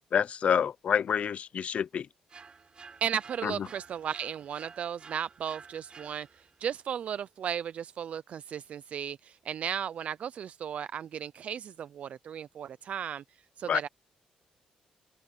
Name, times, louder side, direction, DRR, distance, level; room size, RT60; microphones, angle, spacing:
voice 1, 0.1-2.1 3.4-3.5 13.7-13.8, left 8 dB, 55° left, 0.6 m, -27 dB
sound 1, 2.3-6.6, right 5 dB, 40° right, 4.4 m, -52 dB
voice 2, 3.0-6.3 6.6-13.2 13.6-13.9, right 8 dB, 60° right, 0.5 m, -35 dB
cardioid pair, 75°, 3 cm